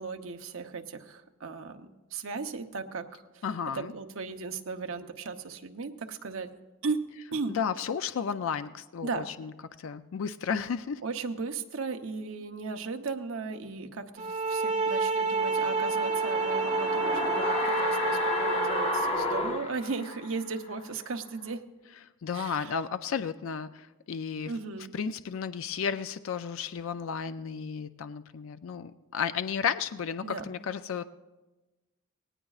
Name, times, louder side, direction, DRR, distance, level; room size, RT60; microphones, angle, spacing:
voice 1, 0.0-3.4 3.7-6.5 6.8-7.6 9.0-9.3 11.0-21.6 22.3-22.7 24.4-24.9 30.2-30.4, right 4 dB, 75° right, 6 dB, 0.8 m, -36 dB
voice 2, 3.4-3.9 7.5-9.5 9.8-11.0 22.2-24.5 24.9-31.0, left 6 dB, 70° left, 11 dB, 0.4 m, -33 dB
sound 1, 14.2-19.2, right 3 dB, 40° right, 1.8 m, -29 dB
sound 2, 15.4-20.5 20.8-20.9, left 2 dB, 30° left, 0.9 m, -32 dB
18.5 x 18.0 x 2.4 m, 1.2 s
head